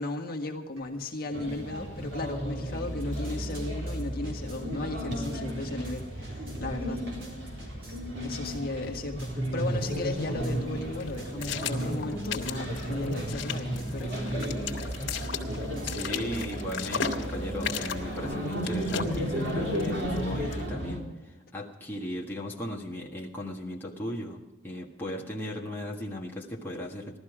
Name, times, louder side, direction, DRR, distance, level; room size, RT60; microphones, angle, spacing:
voice 1, 0.0-7.1 7.6-7.7 8.2-14.5, left 2 dB, 50° left, 1 dB, 1.7 m, -35 dB
sound 1, 0.8-0.9 1.2-16.4, right 1 dB, 85° right, 4.6 m, -48 dB
sound 2, 1.3-21.0, equal, 60° right, 3.7 m, -34 dB
sound 3, 9.6-20.7, left 6 dB, 70° left, 1.8 m, -37 dB
voice 2, 15.8-27.2, left 1 dB, 10° left, -3 dB, 1.6 m, -37 dB
17.0 x 12.5 x 4.9 m, 1.2 s
head